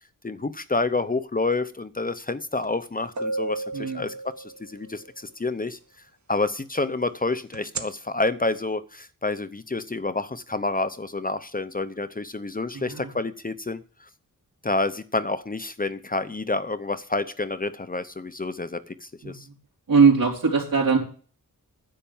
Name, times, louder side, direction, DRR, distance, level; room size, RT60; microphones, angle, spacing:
voice 1, 0.2-5.8 6.3-14.1 14.6-19.5, left 3 dB, 25° left, 0.7 m, -29 dB
sound 1, 2.6-2.7 3.2-4.9 7.5-7.8, right 2 dB, 55° right, 1.4 m, -31 dB
voice 2, 3.7-4.0 12.7-13.1 19.2-19.5 19.9-21.0, right 5 dB, 85° right, 3.9 m, -21 dB
10.5 x 8.2 x 7.1 m
wide cardioid pair, 105°, 34 cm